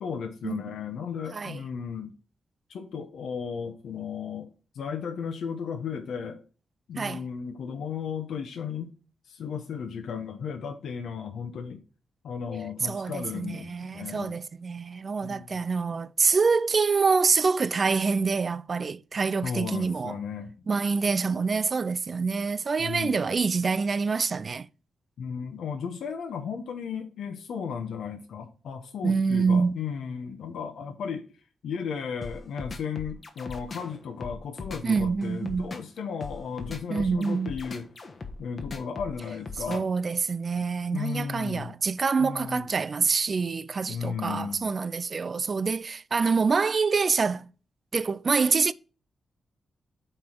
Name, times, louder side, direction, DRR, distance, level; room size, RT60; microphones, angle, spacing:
voice 1, 0.0-2.1 2.7-4.5 4.7-6.4 6.9-8.9 9.3-11.8 12.2-14.3 15.2-15.6 19.4-20.5 22.8-23.2 25.2-31.3 31.6-37.9 38.4-39.9 40.9-41.7 42.2-42.7 43.9-44.7, left 6 dB, 90° left, 0.9 m, -35 dB
voice 2, 12.8-20.2 20.7-24.7 29.0-29.8 34.8-35.8 36.9-37.5 39.7-47.5 47.9-48.7, right 4 dB, 35° right, 0.3 m, -26 dB
sound 1, 32.2-40.0, left 3 dB, 30° left, 1.1 m, -39 dB
8.6 x 3.5 x 5.9 m
wide cardioid pair, 150°, 0 cm